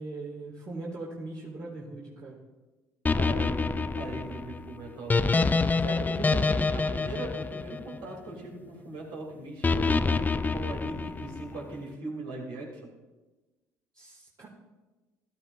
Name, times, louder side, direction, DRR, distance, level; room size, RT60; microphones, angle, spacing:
voice 1, 0.0-2.4 13.9-14.5, right 2 dB, 45° right, -5 dB, 2.4 m, -40 dB
sound 1, 3.1-8.3 9.6-11.6, left 4 dB, 20° left, 0.4 m, -27 dB
voice 2, 3.1-12.9, right 2 dB, 70° right, -1 dB, 3.0 m, -39 dB
14.5 x 12.0 x 2.6 m, 1.2 s
hypercardioid pair, 60°, 9 cm